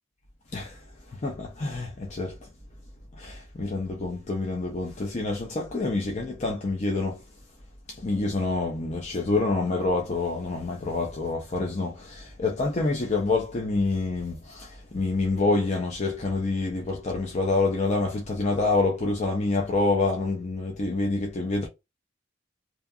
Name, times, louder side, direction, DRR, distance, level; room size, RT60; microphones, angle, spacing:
voice 1, 1.1-2.4 3.2-7.2 7.9-21.7, left 3 dB, 35° left, 0.5 m, -27 dB
2.7 x 2.4 x 2.4 m
head